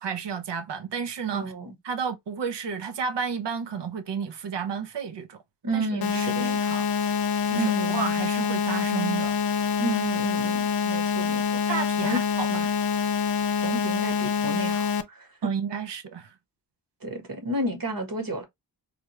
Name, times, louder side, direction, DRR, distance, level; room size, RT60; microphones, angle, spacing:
voice 1, 0.0-1.5 1.8-5.4 5.7-6.8 7.5-9.4 11.7-12.5 15.4-16.3, right 6 dB, 70° right, 0.7 m, -32 dB
voice 2, 1.3-1.7 5.6-6.6 7.5-8.0 9.8-11.6 12.0-12.2 12.5-12.7 13.6-15.5 17.0-18.4, right 1 dB, 50° right, 1.3 m, -31 dB
sound 1, 6.0-15.0, left 6 dB, 55° left, 0.6 m, -26 dB
3.4 x 2.3 x 3.0 m
cardioid pair, 60°, 43 cm